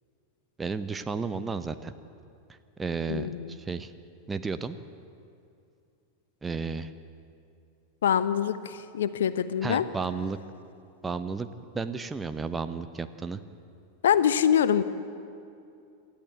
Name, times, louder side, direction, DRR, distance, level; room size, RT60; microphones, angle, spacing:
voice 1, 0.6-1.9 2.8-3.9 4.3-4.8 6.4-6.9 9.6-10.4 11.0-11.5 11.7-13.4, right 4 dB, 15° right, 10 dB, 0.9 m, -32 dB
voice 2, 3.1-3.6 8.0-9.9 14.0-14.8, left 9 dB, 60° left, 13 dB, 0.9 m, -24 dB
27.0 x 13.5 x 8.1 m, 2.5 s
figure-of-eight pair, 90°, 0 cm